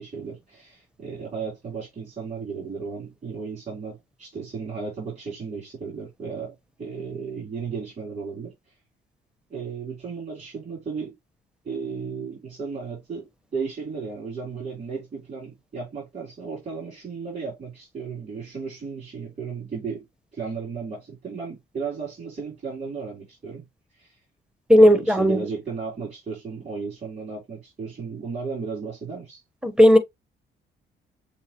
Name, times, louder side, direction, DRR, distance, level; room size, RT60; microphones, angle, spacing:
voice 1, 0.0-8.5 9.5-11.1 11.6-20.1 20.3-23.7 24.0-24.2 24.8-29.4, right 5 dB, 45° right, 3.6 m, -34 dB
voice 2, 24.7-25.4 29.6-30.0, equal, 5° right, 1.0 m, -14 dB
7.2 x 2.4 x 2.9 m
cardioid pair, 90°, 20 cm